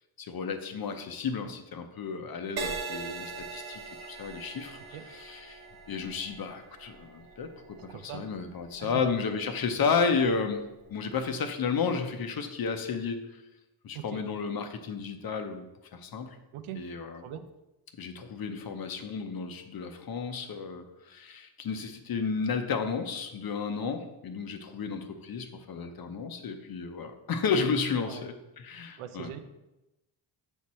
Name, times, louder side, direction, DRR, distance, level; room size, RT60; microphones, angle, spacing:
voice 1, 0.2-4.8 5.1-13.3 13.8-15.7 15.9-16.4 16.8-17.2 18.0-29.3, left 5 dB, 45° left, 7 dB, 0.8 m, -32 dB
Crash cymbal, 2.6-10.2 10.9-11.2, right 4 dB, 50° right, 1.2 m, -42 dB
voice 2, 7.8-8.3 8.8-9.0 13.9-14.2 16.5-16.9 17.2-17.4 23.8-23.9 28.0-28.3 29.0-29.4, right 10 dB, 80° right, 9 dB, 0.7 m, -41 dB
6.3 x 3.6 x 4.2 m, 0.97 s
cardioid pair, 90°, 50 cm